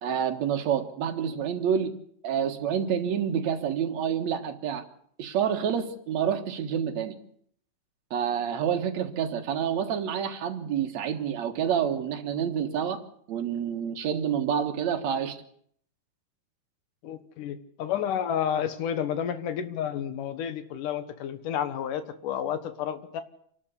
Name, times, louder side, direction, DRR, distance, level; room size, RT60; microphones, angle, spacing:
voice 1, 0.0-1.9 2.2-4.8 5.2-7.2 8.1-13.0 13.3-15.4, right 8 dB, 65° right, 5 dB, 2.7 m, -28 dB
voice 2, 17.0-23.2, left 9 dB, 80° left, 11 dB, 2.9 m, -31 dB
27.0 x 12.5 x 8.3 m, 0.65 s
omnidirectional pair, 3.7 m